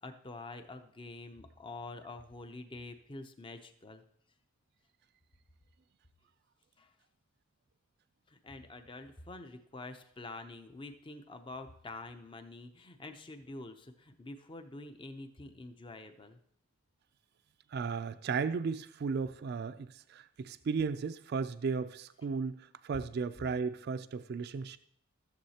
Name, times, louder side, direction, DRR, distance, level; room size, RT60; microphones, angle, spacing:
voice 1, 0.0-4.0 6.8-6.9 8.3-16.4 22.9-23.0, left 2 dB, 25° left, 8 dB, 0.6 m, -47 dB
voice 2, 17.7-24.8, right 5 dB, 50° right, 11 dB, 0.3 m, -35 dB
14.5 x 7.1 x 2.8 m, 0.69 s
head